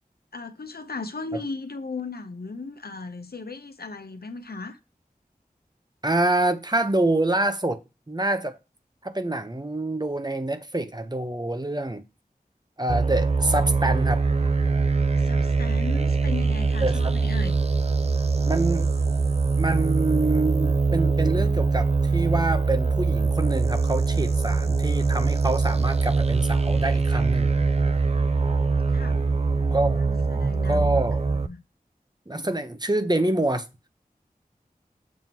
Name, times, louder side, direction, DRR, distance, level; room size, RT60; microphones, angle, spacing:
voice 1, 0.3-4.8 15.1-17.5 28.9-29.2 30.0-31.6, left 3 dB, 85° left, 0.9 m, -36 dB
voice 2, 6.0-7.8 8.1-8.6 9.0-12.0 12.8-14.2 16.8-17.1 18.5-18.9 19.6-27.5 29.7-30.0 30.7-31.2 32.3-33.6, right 2 dB, 25° right, 0.9 m, -26 dB
sound 1, 12.9-31.5, right 4 dB, 40° right, 0.5 m, -23 dB
7.3 x 3.0 x 5.8 m
wide cardioid pair, 40°, 16 cm